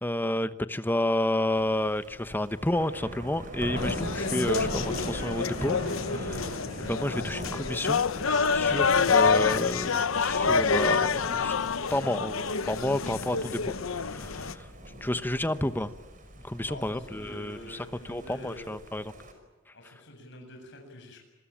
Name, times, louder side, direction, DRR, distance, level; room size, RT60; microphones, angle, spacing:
voice 1, 0.0-8.0 8.5-11.6 11.9-14.7 15.0-15.9 16.4-19.1, left 1 dB, 10° left, 12 dB, 1.0 m, -31 dB
Thunder, 1.5-19.3, equal, 40° right, 5.5 m, -40 dB
sound 1, 3.8-14.5, left 5 dB, 90° left, 0.9 m, -27 dB
voice 2, 16.6-18.7 19.7-21.2, left 1 dB, 60° left, 2 dB, 7.9 m, -46 dB
27.0 x 22.0 x 8.9 m, 1.2 s
head